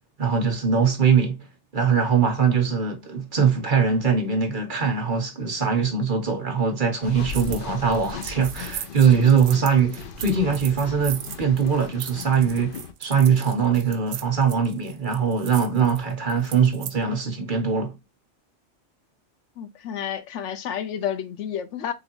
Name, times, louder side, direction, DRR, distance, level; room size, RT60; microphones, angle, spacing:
voice 1, 0.2-1.4 1.7-17.9, right 6 dB, 45° right, 1.0 m, -22 dB
sound 1, 7.0-12.9, left 5 dB, 55° left, 0.7 m, -37 dB
sound 2, 7.3-7.6 7.9-17.0, right 10 dB, 70° right, 0.8 m, -38 dB
voice 2, 19.6-21.9, left 9 dB, 80° left, 1.0 m, -30 dB
3.8 x 3.4 x 2.8 m
omnidirectional pair, 1.2 m